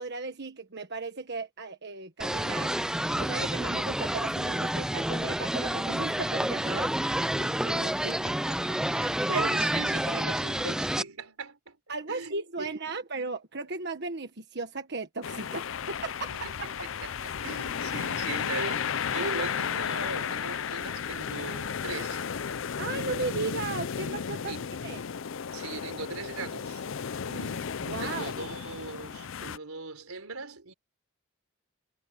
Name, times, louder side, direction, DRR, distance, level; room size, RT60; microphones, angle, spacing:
voice 1, 0.0-2.7 3.1-6.9 7.4-7.9 9.3-9.7 11.9-16.7 22.8-24.6 24.8-25.0 27.3-28.5, right 3 dB, 50° right, 1.4 m, -36 dB
sound 1, 2.2-11.0, right 1 dB, 5° right, 0.4 m, -29 dB
voice 2, 8.0-11.8 12.1-12.7 16.3-22.2 24.5-24.7 25.5-26.8 28.0-30.7, right 4 dB, 90° right, 4.1 m, -40 dB
sound 2, 15.2-29.6, left 7 dB, 65° left, 0.5 m, -34 dB
head